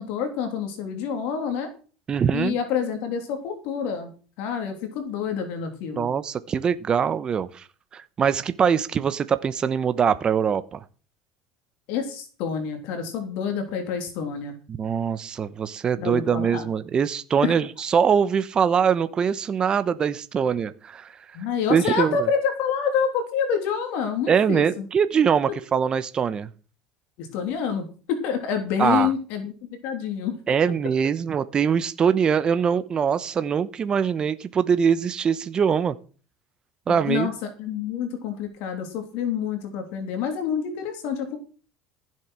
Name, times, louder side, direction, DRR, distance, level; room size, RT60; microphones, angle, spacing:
voice 1, 0.0-1.7 2.3-4.1 4.4-6.1 11.9-14.5 16.0-16.7 17.4-17.6 21.3-24.9 25.5-25.6 27.2-29.5 29.8-30.4 36.9-41.4, left 7 dB, 70° left, 6 dB, 3.1 m, -27 dB
voice 2, 2.1-2.6 6.0-7.6 7.9-10.8 14.7-21.2 21.7-22.2 24.3-26.5 28.8-29.1 30.5-35.9 36.9-37.3, right 7 dB, 35° right, 13 dB, 1.0 m, -23 dB
15.0 x 7.7 x 6.2 m, 0.38 s
hypercardioid pair, 90°, 3 cm